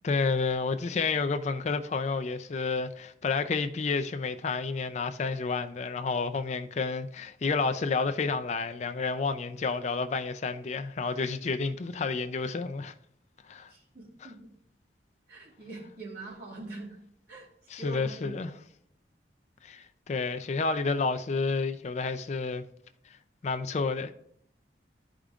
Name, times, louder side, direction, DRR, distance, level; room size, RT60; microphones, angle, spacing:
voice 1, 0.0-12.9 13.5-13.7 14.2-14.3 17.7-18.5 19.6-22.6 23.4-24.1, left 4 dB, 40° left, 0.4 m, -30 dB
voice 2, 13.7-14.5 15.3-17.0 17.3-18.4, right 2 dB, 65° right, 2.7 m, -43 dB
12.5 x 5.0 x 2.4 m
head